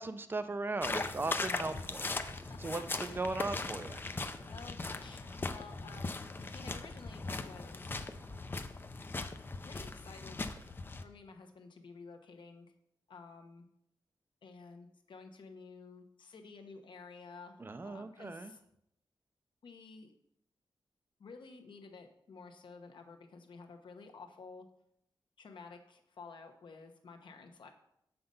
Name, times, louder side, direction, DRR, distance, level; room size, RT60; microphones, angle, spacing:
voice 1, 0.0-2.3 2.6-4.2 17.6-18.5, right 3 dB, 25° right, 11 dB, 0.5 m, -38 dB
voice 2, 0.7-1.3 1.6-1.9 2.5-2.6 3.0-3.4 4.5-8.0 9.6-10.4 11.0-12.7 13.1-13.7 14.4-18.6 19.6-20.1 21.2-24.7 25.4-27.7, left 4 dB, 65° left, 4 dB, 1.1 m, -52 dB
sound 1, 0.8-11.0, left 3 dB, 25° left, 0.5 m, -39 dB
7.6 x 5.8 x 5.4 m, 0.76 s
wide cardioid pair, 170°, 9 cm